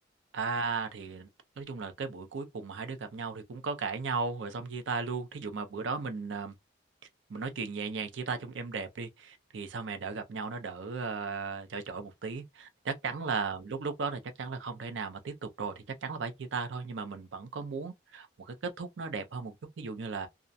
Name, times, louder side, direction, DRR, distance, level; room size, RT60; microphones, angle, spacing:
voice 1, 0.3-1.3 1.6-6.5 7.3-20.3, right 4 dB, 75° right, 0.5 m, -36 dB
2.4 x 2.1 x 2.6 m
head